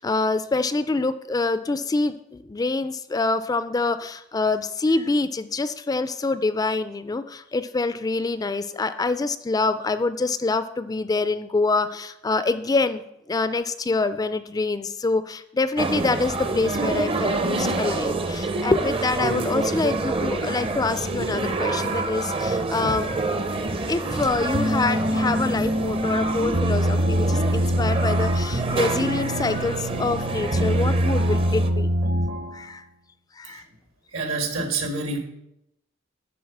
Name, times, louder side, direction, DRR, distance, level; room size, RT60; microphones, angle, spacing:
voice 1, 0.0-23.2 23.9-31.9 32.5-32.8 33.4-33.6, left 3 dB, 20° left, 12 dB, 0.3 m, -25 dB
sound 1, 15.8-31.7, right 2 dB, 25° right, 0.6 m, -27 dB
sound 2, 24.5-32.6, equal, 55° right, 1.0 m, -24 dB
voice 2, 34.1-35.2, right 3 dB, 75° right, 3 dB, 1.7 m, -27 dB
11.0 x 3.9 x 7.1 m, 0.83 s
head